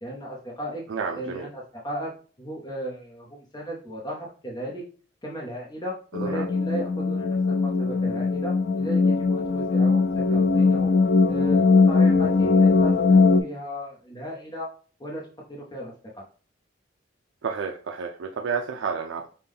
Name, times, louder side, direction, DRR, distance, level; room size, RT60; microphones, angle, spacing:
voice 1, 0.0-0.8 1.2-2.1 2.4-4.8 5.2-5.9 6.2-10.9 11.3-14.7 15.0-15.2 15.5-16.2, equal, 25° left, -3 dB, 0.8 m, -36 dB
voice 2, 0.9-1.5 6.1-6.5 17.4-19.3, right 5 dB, 85° right, 3 dB, 0.4 m, -30 dB
sound 1, 6.1-13.4, left 4 dB, 60° left, 0.5 m, -20 dB
5.3 x 2.2 x 3.5 m, 0.40 s
head